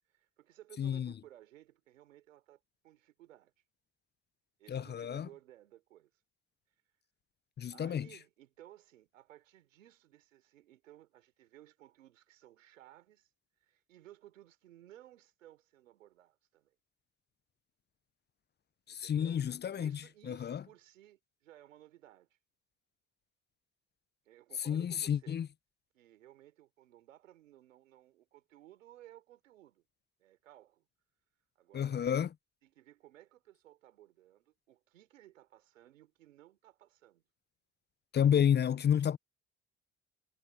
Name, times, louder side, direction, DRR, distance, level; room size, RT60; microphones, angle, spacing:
voice 1, 0.1-3.5 4.6-6.1 7.7-13.3 13.6-16.7 18.9-19.4 19.7-22.4 24.2-25.4 25.9-29.8 30.2-30.8 31.5-32.1 32.6-37.2, right 13 dB, 90° right, 3.5 m, -58 dB
voice 2, 0.8-1.1 4.7-5.3 7.6-8.1 18.9-20.6 24.7-25.5 31.7-32.3 38.1-39.2, left 9 dB, 30° left, 0.5 m, -30 dB
hypercardioid pair, 55°, 37 cm